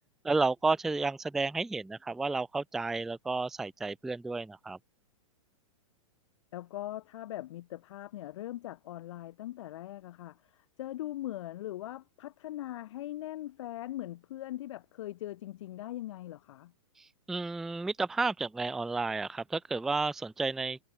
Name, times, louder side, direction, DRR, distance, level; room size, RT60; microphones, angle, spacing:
voice 1, 0.2-4.8 17.3-20.8, right 3 dB, ahead, 0.3 m, -31 dB
voice 2, 6.5-16.7, left 14 dB, 55° left, 1.2 m, -41 dB
figure-of-eight pair, 110°, 19 cm